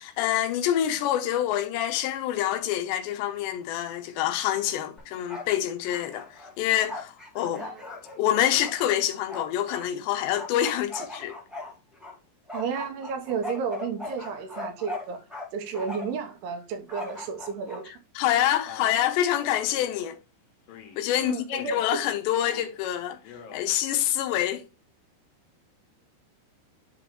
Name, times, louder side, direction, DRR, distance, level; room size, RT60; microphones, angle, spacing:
voice 1, 0.0-7.7 8.2-11.3 18.2-20.2 21.0-23.2 23.5-24.6, left 11 dB, 90° left, 3.0 m, -26 dB
Bark, 5.0-5.6 5.8-9.9 10.3-12.1 12.5-15.5 15.7-16.2 16.9-17.8, left 2 dB, ahead, 0.3 m, -38 dB
voice 2, 7.4-7.8 12.5-15.2 15.5-18.0 21.2-22.0, right 6 dB, 75° right, 2.7 m, -33 dB
Male speech man speaking, 18.7-19.1 19.7-20.1 20.7-21.1 21.5-21.9 22.3-22.8 23.2-23.7, left 7 dB, 65° left, 2.8 m, -46 dB
11.0 x 4.3 x 3.0 m
omnidirectional pair, 5.1 m